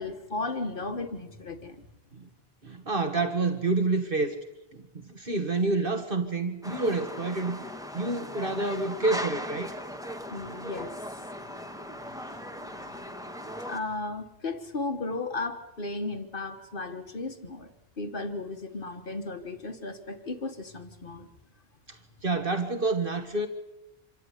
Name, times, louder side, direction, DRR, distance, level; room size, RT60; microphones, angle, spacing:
voice 1, 0.0-1.9 10.3-11.0 13.7-17.7 18.0-21.3, left 3 dB, 60° left, 7 dB, 1.6 m, -35 dB
voice 2, 2.6-4.4 4.7-7.6 7.9-9.7 21.9-23.5, right 3 dB, 60° right, 6 dB, 1.8 m, -28 dB
sound 1, 6.6-13.8, equal, 5° right, 1.4 m, -38 dB
26.5 x 13.5 x 10.0 m, 0.96 s
omnidirectional pair, 1.0 m